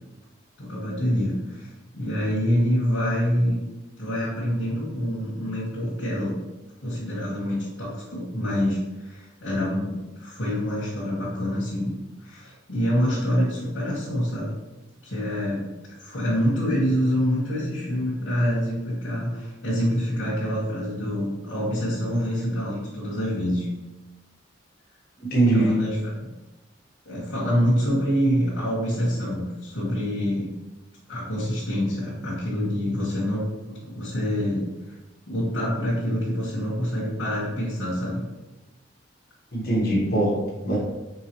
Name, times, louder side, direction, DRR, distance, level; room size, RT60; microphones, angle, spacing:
voice 1, 0.6-3.6 4.0-6.4 6.8-12.0 12.2-14.5 15.0-15.7 16.0-23.7 25.5-26.1 27.0-30.5 31.1-34.7 35.3-38.2, equal, 75° left, -8 dB, 1.4 m, -26 dB
voice 2, 25.2-25.8 39.5-40.8, right 1 dB, 55° left, -4 dB, 1.3 m, -22 dB
4.6 x 3.6 x 3.1 m, 1.1 s
head